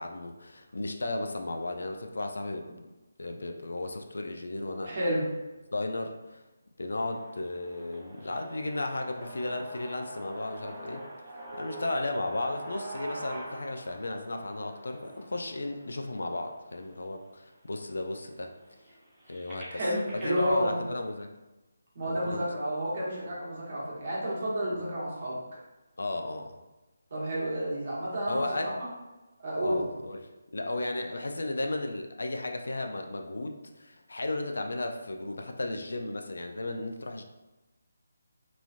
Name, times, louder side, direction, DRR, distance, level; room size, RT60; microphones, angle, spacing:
voice 1, 0.0-2.7 3.2-4.9 5.7-6.4 6.8-11.0 11.5-18.5 19.3-19.8 20.1-21.3 22.0-22.5 26.0-26.6 28.3-28.8 29.6-37.2, left 2 dB, 75° left, 4 dB, 0.3 m, -34 dB
voice 2, 4.8-5.3 19.7-20.8 21.9-25.4 27.1-28.9 29.4-29.9, equal, 50° right, -6 dB, 1.2 m, -30 dB
sound 1, 7.1-17.0 17.7-17.8 18.1-20.5, right 1 dB, 15° right, 0.8 m, -45 dB
3.0 x 2.4 x 2.4 m, 1.1 s
figure-of-eight pair, 155°, 0 cm